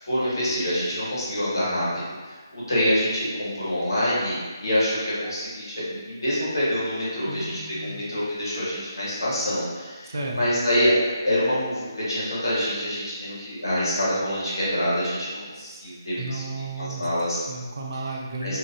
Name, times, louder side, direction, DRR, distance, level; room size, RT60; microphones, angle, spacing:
voice 1, 0.1-16.4 16.8-17.4 18.4-18.6, equal, 80° left, -8 dB, 1.4 m, -26 dB
voice 2, 7.2-8.0 10.0-10.4 15.5-15.8 16.2-17.1 17.5-18.6, right 2 dB, 55° right, -1 dB, 0.5 m, -33 dB
2.7 x 2.5 x 2.2 m, 1.4 s
figure-of-eight pair, 155°, 2 cm